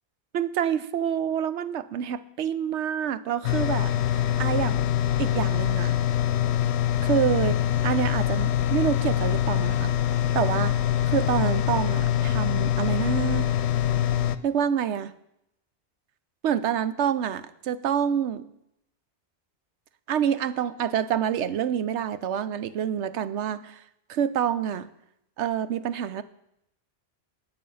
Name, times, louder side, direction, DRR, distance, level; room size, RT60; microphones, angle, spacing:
voice 1, 0.3-4.9 5.2-5.9 7.0-7.6 7.8-10.0 10.3-10.7 11.1-13.5 14.4-15.1 16.4-18.4 20.1-23.8 24.1-24.9 25.4-26.2, right 9 dB, 85° right, 14 dB, 1.0 m, -27 dB
sound 1, 3.4-14.4, left 11 dB, 75° left, 0.8 m, -24 dB
18.5 x 6.4 x 5.5 m, 0.80 s
omnidirectional pair, 1.1 m